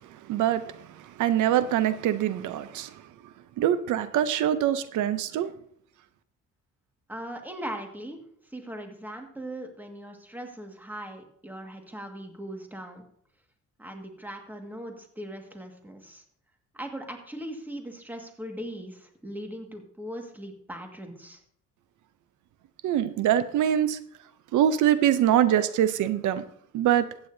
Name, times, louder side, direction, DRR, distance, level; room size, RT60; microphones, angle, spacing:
voice 1, 0.3-0.7 1.0-2.9 3.6-5.5 22.8-24.0 24.5-26.4 26.7-27.1, right 11 dB, 80° right, 0.7 m, -24 dB
voice 2, 7.1-13.0 13.8-16.2 16.7-21.4, right 1 dB, 5° right, 1.8 m, -39 dB
14.5 x 9.1 x 2.7 m
cardioid pair, 90°, 30 cm